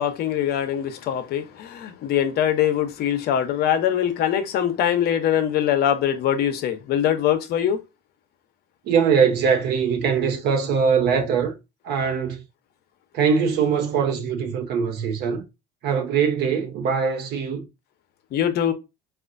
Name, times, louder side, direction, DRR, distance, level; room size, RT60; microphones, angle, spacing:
voice 1, 0.0-7.8 18.3-18.7, left 10 dB, 60° left, 0.7 m, -22 dB
voice 2, 8.9-11.5 11.8-12.4 13.1-15.4 15.8-17.7, right 6 dB, 60° right, 0.9 m, -22 dB
4.2 x 2.4 x 2.5 m
cardioid pair, 115°, 19 cm